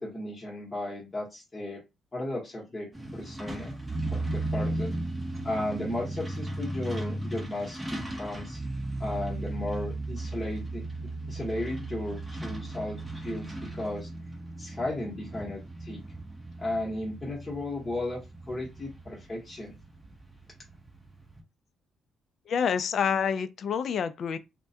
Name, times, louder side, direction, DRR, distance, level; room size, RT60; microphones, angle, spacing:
voice 1, 0.0-1.8 2.1-3.7 4.1-4.9 5.4-8.6 9.0-10.8 11.3-13.4 13.7-14.1 14.6-16.0 16.6-18.2 18.5-19.7, left 1 dB, 20° left, 0.9 m, -35 dB
Truck, 2.9-21.4, right 2 dB, 10° right, 0.7 m, -36 dB
voice 2, 22.5-24.4, left 7 dB, 60° left, 0.3 m, -27 dB
2.2 x 2.1 x 2.7 m
cardioid pair, 90°, 0 cm